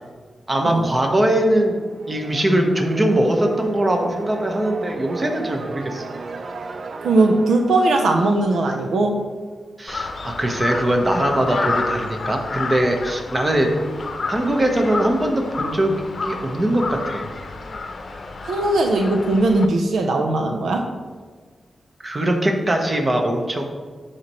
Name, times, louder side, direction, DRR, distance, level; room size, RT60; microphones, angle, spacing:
voice 1, 0.5-1.8 2.1-6.0 9.8-13.7 14.3-15.9 16.2-17.2 22.0-23.6, right 1 dB, 30° right, 2 dB, 1.2 m, -21 dB
sound 1, 1.4-9.1, right 3 dB, 55° right, 0.4 m, -36 dB
voice 2, 7.0-9.2 18.4-20.9, right 2 dB, 90° right, 3 dB, 0.7 m, -19 dB
Crow, 9.9-19.6, left 3 dB, 50° left, 0.7 m, -30 dB
12.0 x 4.4 x 3.1 m, 1.5 s
cardioid pair, 85°, 0 cm